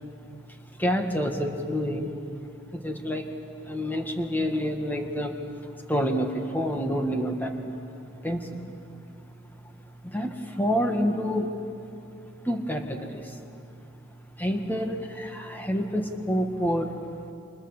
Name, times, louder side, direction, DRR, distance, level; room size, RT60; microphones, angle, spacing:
voice 1, 0.8-2.1 2.7-3.2 3.7-5.3 5.9-7.8 8.2-8.5 10.0-11.6 12.5-13.2 14.4-16.9, equal, 10° left, 4 dB, 1.8 m, -28 dB
29.0 x 26.0 x 7.3 m, 2.7 s
head